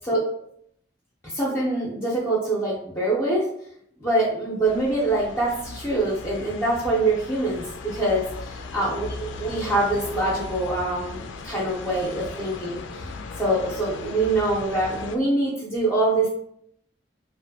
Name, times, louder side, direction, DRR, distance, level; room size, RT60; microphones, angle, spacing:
voice 1, 1.2-3.4 4.0-13.1 13.4-16.3, right 2 dB, 15° left, -5 dB, 0.6 m, -24 dB
sound 1, 4.6-15.2, left 4 dB, 80° left, 0.3 m, -38 dB
2.9 x 2.5 x 2.7 m, 0.69 s
head